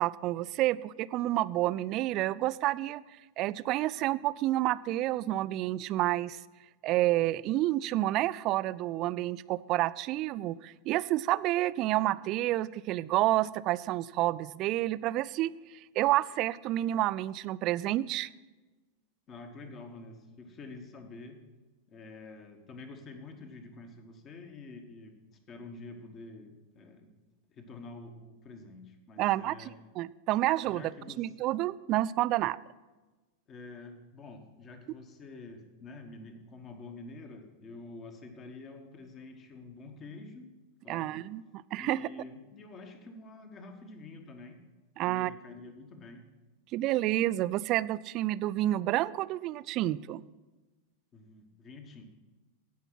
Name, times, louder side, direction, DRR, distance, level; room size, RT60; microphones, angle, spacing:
voice 1, 0.0-3.0 3.4-6.4 6.8-15.5 16.0-18.3 29.2-30.9 31.2-32.6 40.9-41.4 41.7-42.0 45.0-45.3 46.7-50.2, right 15 dB, 40° right, 18 dB, 0.3 m, -29 dB
voice 2, 19.3-21.4 21.9-25.2 25.5-27.1 27.5-29.8 30.6-31.3 33.5-40.5 40.8-41.3 41.8-44.6 45.0-46.3 51.1-52.0, left 3 dB, 30° left, 6 dB, 1.4 m, -47 dB
16.0 x 5.7 x 5.8 m, 1.2 s
figure-of-eight pair, 90°, 0 cm